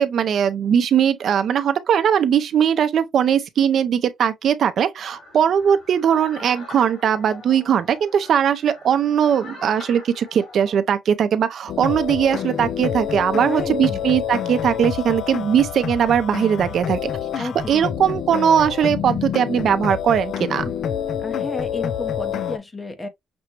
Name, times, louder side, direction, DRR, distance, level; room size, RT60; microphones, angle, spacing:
voice 1, 0.0-17.1 17.4-20.6, right 8 dB, 65° right, 0.5 m, -20 dB
sound 1, 5.1-10.8, left 3 dB, 50° left, 2.8 m, -42 dB
sound 2, 11.7-22.6, left 8 dB, 65° left, 0.4 m, -27 dB
voice 2, 13.3-14.1 17.4-18.2 21.2-23.1, left 3 dB, 25° left, 0.8 m, -33 dB
6.0 x 2.1 x 2.9 m
cardioid pair, 90°, 0 cm